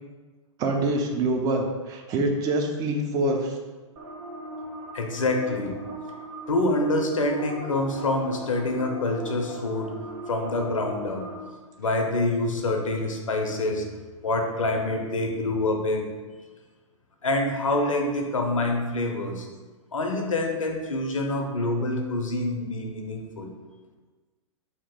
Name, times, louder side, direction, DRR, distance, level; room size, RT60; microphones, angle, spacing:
voice 1, 0.6-3.6, right 2 dB, 20° right, 3 dB, 0.4 m, -25 dB
sound 1, 4.0-11.3, right 1 dB, 45° right, 0.8 m, -39 dB
voice 2, 4.9-5.8 6.5-9.9 10.3-11.2 11.8-13.8 14.2-16.1 17.2-19.5 19.9-23.5, left 2 dB, 75° left, 2 dB, 0.6 m, -26 dB
2.8 x 2.6 x 3.6 m, 1.3 s
figure-of-eight pair, 105°, 17 cm